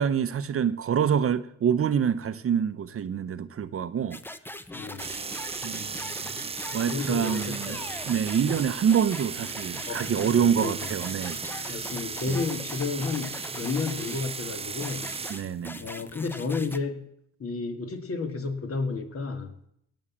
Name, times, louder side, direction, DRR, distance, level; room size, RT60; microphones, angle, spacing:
voice 1, 0.0-4.2 5.6-6.4 6.7-7.8 8.0-11.8 12.3-12.5 15.3-15.9, right 8 dB, 50° right, 0.9 m, -26 dB
sound 1, 4.1-14.4 14.8-16.8, left 1 dB, 5° left, 0.9 m, -41 dB
voice 2, 4.7-5.1 6.8-7.9 8.5-8.6 9.9-10.8 11.7-15.1 15.8-17.0 17.4-19.7, left 4 dB, 50° left, 2.3 m, -32 dB
sound 2, 5.0-15.5, right 5 dB, 20° right, 0.5 m, -36 dB
18.0 x 6.4 x 7.5 m
cardioid pair, 90°, 30 cm